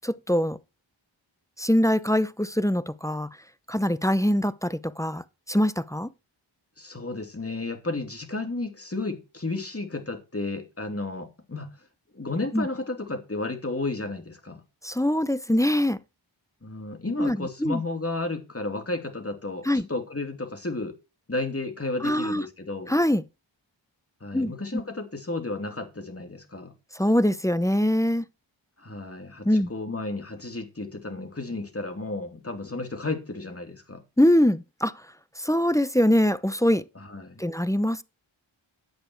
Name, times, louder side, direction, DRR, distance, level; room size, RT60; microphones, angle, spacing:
voice 1, 0.0-0.6 1.6-3.3 3.7-6.1 12.5-12.7 14.8-16.0 17.2-17.8 19.6-19.8 22.0-22.4 22.9-23.2 24.3-24.5 26.9-28.3 29.5-29.7 34.2-34.9 35.4-36.8 37.4-38.0, left 1 dB, 5° left, 0.7 m, -23 dB
voice 2, 6.8-11.7 12.1-14.6 16.6-21.0 21.3-22.9 24.2-26.7 28.8-34.0 36.9-37.5, left 2 dB, 30° left, 2.8 m, -33 dB
10.5 x 8.7 x 4.6 m
cardioid pair, 55°, 48 cm